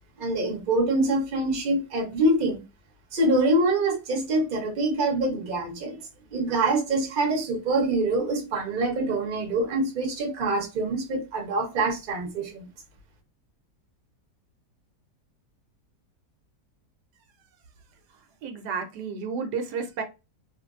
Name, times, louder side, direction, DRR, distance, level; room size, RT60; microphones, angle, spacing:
voice 1, 0.2-2.6 3.1-6.0 6.3-12.7, right 2 dB, 40° right, 0.8 m, -25 dB
voice 2, 18.1-20.0, right 5 dB, 80° right, 1.2 m, -32 dB
3.0 x 2.5 x 2.4 m
omnidirectional pair, 1.8 m